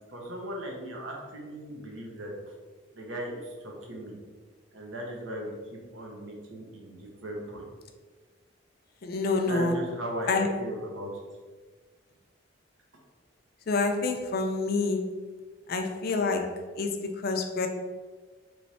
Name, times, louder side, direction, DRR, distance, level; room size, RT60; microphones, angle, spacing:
voice 1, 0.0-2.5 2.9-4.2 4.7-5.5 5.9-7.6 9.4-11.1, equal, 70° right, -1 dB, 0.9 m, -38 dB
voice 2, 9.0-9.8 10.3-10.5 13.7-15.1 15.7-17.7, left 3 dB, 45° left, 4 dB, 0.4 m, -28 dB
3.3 x 3.1 x 4.1 m, 1.4 s
head